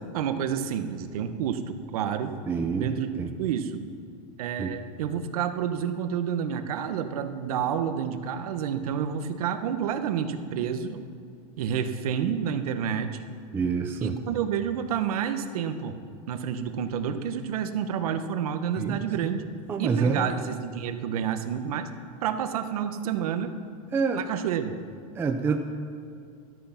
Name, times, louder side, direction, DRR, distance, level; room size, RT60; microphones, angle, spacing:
voice 1, 0.1-2.3 2.8-3.1 3.4-3.8 4.4-11.0 11.6-13.1 14.0-16.0 16.3-19.4 19.8-21.9 22.2-23.5 24.1-24.7, right 8 dB, 80° right, 8 dB, 1.2 m, -29 dB
voice 2, 2.5-2.9 3.2-3.3 4.6-4.7 13.5-14.2 18.8-19.4 19.7-20.3 23.9-24.3 25.2-25.6, right 5 dB, 10° right, 4 dB, 0.5 m, -27 dB
13.0 x 12.5 x 5.9 m, 2.4 s
supercardioid pair, 165°, 19 cm